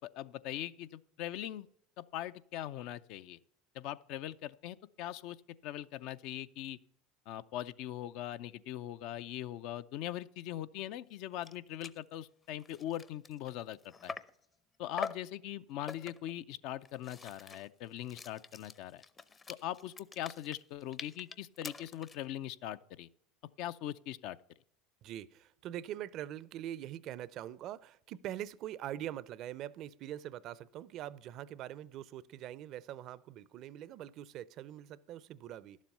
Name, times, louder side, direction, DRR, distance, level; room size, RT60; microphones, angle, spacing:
voice 1, 0.0-1.7 2.0-3.4 3.7-5.4 5.6-6.8 7.3-14.1 14.8-19.0 19.5-23.1 23.6-24.4, left 12 dB, 65° left, 0.5 m, -41 dB
sound 1, 11.1-11.2 11.4-11.6 11.8-12.0 12.5-14.4 15.0-15.3 15.9-16.4 16.8-22.3, left 4 dB, 25° left, 0.6 m, -46 dB
voice 2, 25.0-35.8, right 12 dB, 55° right, 0.5 m, -43 dB
11.5 x 7.4 x 5.4 m
hypercardioid pair, 90°, 0 cm